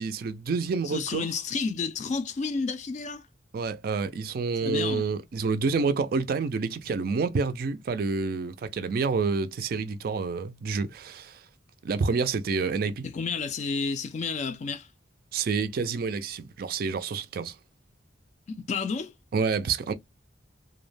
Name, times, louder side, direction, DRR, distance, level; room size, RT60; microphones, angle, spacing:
voice 1, 0.0-1.3 3.5-11.4 11.8-13.1 15.3-17.5 19.3-19.9, right 4 dB, 50° right, 0.3 m, -28 dB
voice 2, 0.8-3.2 4.6-5.1 13.0-14.9 18.5-19.1, left 4 dB, 40° left, 0.3 m, -31 dB
2.2 x 2.1 x 3.1 m
head